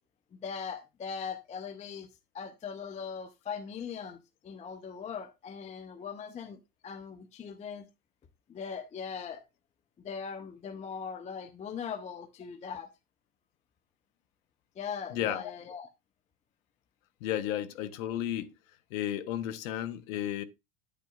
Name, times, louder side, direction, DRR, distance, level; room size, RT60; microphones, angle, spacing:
voice 1, 0.3-2.1 2.3-7.8 8.5-9.4 10.0-12.9 14.8-15.9, left 6 dB, 15° left, 0.5 m, -40 dB
voice 2, 15.1-15.4 17.2-18.5 18.9-20.4, left 11 dB, 60° left, 1.0 m, -33 dB
10.5 x 8.6 x 2.4 m
hypercardioid pair, 95°, 47 cm